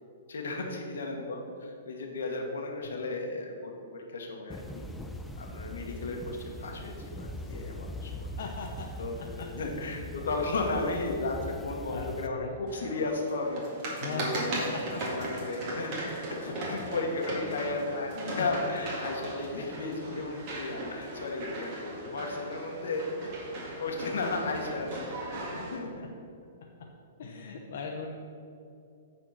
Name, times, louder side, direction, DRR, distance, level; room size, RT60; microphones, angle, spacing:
voice 1, 0.3-4.8 5.4-8.3 9.0-9.2 9.5-13.6 14.1-14.7 15.1-16.0 16.3-23.3 23.8-25.1 25.5-26.1, left 3 dB, 85° left, 1 dB, 1.6 m, -34 dB
sound 1, 4.5-12.3, left 1 dB, 5° left, 0.4 m, -41 dB
voice 2, 8.4-8.9 9.2-9.5 11.9-12.6 14.0-15.0 17.3-17.8 18.1-18.5 20.1-20.2 21.9-22.0 26.0-26.1 26.6-26.9 27.2-28.1, left 4 dB, 60° left, 0 dB, 0.8 m, -40 dB
sound 2, 12.7-25.8, right 1 dB, 40° right, 2.0 m, -38 dB
9.0 x 4.4 x 5.9 m, 2.6 s
hypercardioid pair, 155°, 0 cm